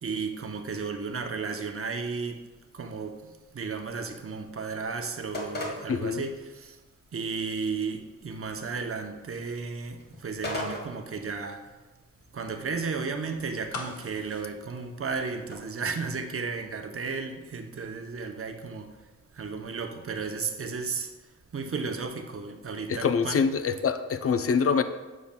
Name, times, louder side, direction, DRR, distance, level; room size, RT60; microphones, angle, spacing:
voice 1, 0.0-2.4 2.7-6.8 7.1-11.7 12.3-19.0 19.3-21.1 21.5-23.4, right 4 dB, 45° right, 0.8 m, -34 dB
sound 1, 1.8-15.6, left 1 dB, 35° left, 1.5 m, -44 dB
voice 2, 5.9-6.2 22.9-24.8, left 6 dB, 50° left, 0.5 m, -25 dB
sound 2, 13.7-15.7 16.0-16.1, left 3 dB, 65° left, 0.9 m, -41 dB
7.0 x 6.3 x 2.2 m
cardioid pair, 55°, 31 cm